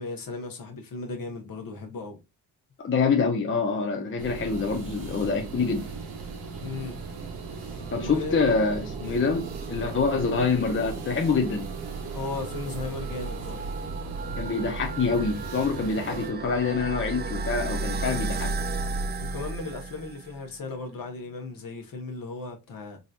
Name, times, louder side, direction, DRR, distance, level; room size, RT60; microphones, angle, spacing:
voice 1, 0.0-2.2 6.6-7.0 8.0-8.4 11.9-13.6 19.2-23.0, left 3 dB, 60° left, 1.2 m, -36 dB
voice 2, 2.8-5.9 7.9-11.7 14.4-18.5, left 4 dB, 30° left, 0.7 m, -26 dB
sound 1, 4.2-16.3, right 5 dB, 75° right, 1.2 m, -38 dB
sound 2, 6.3-20.5, right 3 dB, 25° right, 0.4 m, -35 dB
3.9 x 2.8 x 2.3 m
cardioid pair, 85°, 39 cm